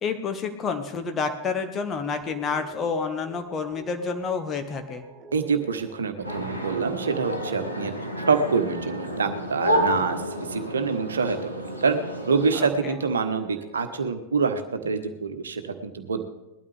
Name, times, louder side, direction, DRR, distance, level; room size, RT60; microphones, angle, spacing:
voice 1, 0.0-5.0 12.5-13.0, left 5 dB, 25° left, 5 dB, 1.6 m, -29 dB
sound 1, 2.0-14.1, right 3 dB, 30° right, 6.4 m, -45 dB
voice 2, 5.3-10.2 10.5-12.0 12.3-16.2, right 5 dB, 70° right, 7 dB, 1.3 m, -26 dB
sound 2, 6.2-12.7, equal, 90° left, 1.9 m, -30 dB
20.0 x 12.5 x 3.4 m, 0.97 s
figure-of-eight pair, 90°, 0 cm